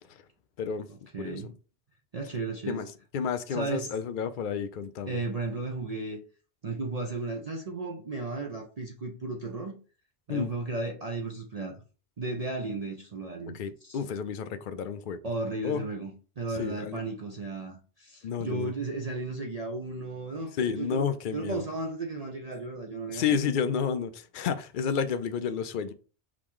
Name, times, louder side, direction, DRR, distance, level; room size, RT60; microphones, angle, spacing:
voice 1, 0.9-1.5 2.1-2.8 3.5-3.9 5.1-6.2 6.6-9.8 10.3-11.8 12.2-14.0 15.2-23.4, right 3 dB, 45° right, 0.6 m, -35 dB
voice 2, 3.1-5.2 10.3-10.5 13.5-15.2 15.6-15.8 16.6-17.0 18.2-18.7 20.6-21.6 23.1-25.9, left 7 dB, 60° left, 0.6 m, -30 dB
4.9 x 2.9 x 3.7 m
omnidirectional pair, 1.2 m